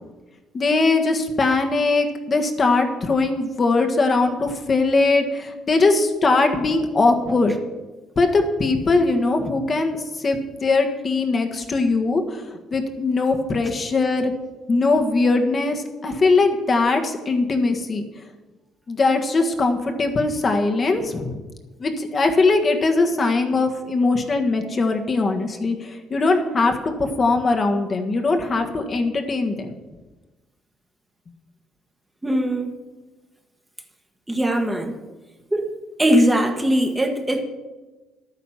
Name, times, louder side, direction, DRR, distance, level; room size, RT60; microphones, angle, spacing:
voice 1, 0.5-7.5 8.2-12.4 12.7-14.3 14.7-18.0 18.9-21.4 21.8-29.7, left 3 dB, 35° left, 4 dB, 1.4 m, -21 dB
voice 2, 32.2-32.7 34.3-35.0 35.5-35.7 36.0-37.4, equal, 10° right, 4 dB, 1.4 m, -20 dB
11.0 x 9.3 x 5.8 m, 1.2 s
cardioid pair, 100°, 0 cm